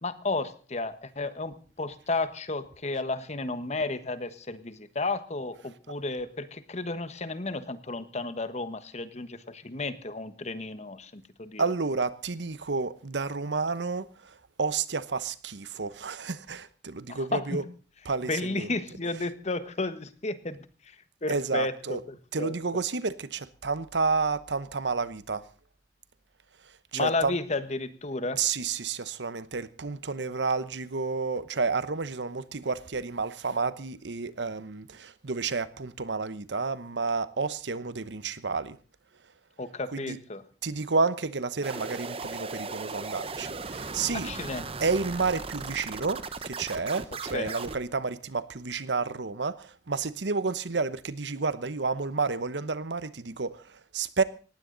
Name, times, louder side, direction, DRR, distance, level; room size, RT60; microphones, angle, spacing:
voice 1, 0.0-11.6 17.1-17.6 18.3-20.6 21.2-22.5 26.9-28.4 39.6-40.4 44.1-44.7 47.3-47.5, left 3 dB, 40° left, 1.4 m, -32 dB
voice 2, 11.6-17.6 18.1-18.7 21.3-22.0 22.3-25.4 26.9-27.4 28.4-38.8 39.9-40.2 40.6-44.3 44.8-54.2, right 4 dB, 90° right, 1.0 m, -30 dB
sound 1, 41.6-47.8, right 4 dB, 35° right, 1.1 m, -37 dB
19.0 x 15.5 x 4.0 m
head